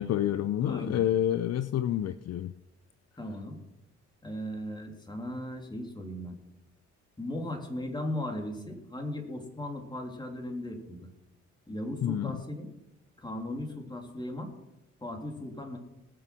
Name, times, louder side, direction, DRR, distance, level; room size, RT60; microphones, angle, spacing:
voice 1, 0.0-2.5 12.0-12.4, left 11 dB, 55° left, 13 dB, 0.6 m, -28 dB
voice 2, 0.6-1.0 3.2-3.6 4.2-6.3 7.2-11.1 11.7-12.7 13.2-14.5 15.0-15.8, left 1 dB, 15° left, 3 dB, 3.1 m, -37 dB
20.5 x 6.9 x 6.1 m, 0.93 s
cardioid pair, 90°, 30 cm